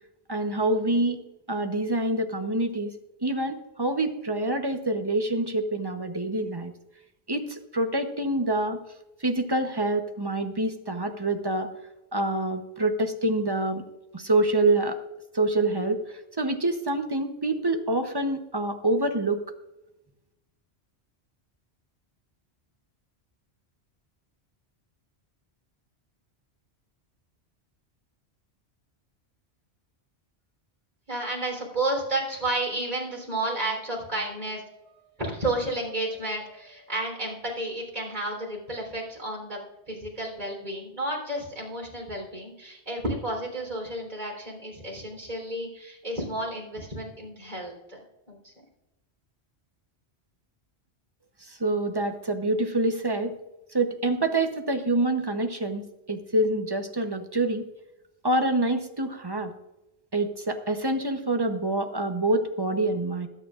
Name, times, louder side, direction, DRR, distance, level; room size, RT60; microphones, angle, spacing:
voice 1, 0.3-1.2 1.5-2.9 3.2-6.7 7.3-8.8 9.2-11.7 12.1-13.8 14.1-15.0 15.3-19.4 51.4-53.3 53.7-57.6 58.2-59.5 60.1-63.3, right 2 dB, 25° right, 6 dB, 0.8 m, -26 dB
voice 2, 31.1-39.6 39.9-48.0 48.3-48.5, right 1 dB, 45° right, -2 dB, 3.8 m, -32 dB
21.0 x 8.8 x 2.5 m, 0.95 s
omnidirectional pair, 1.1 m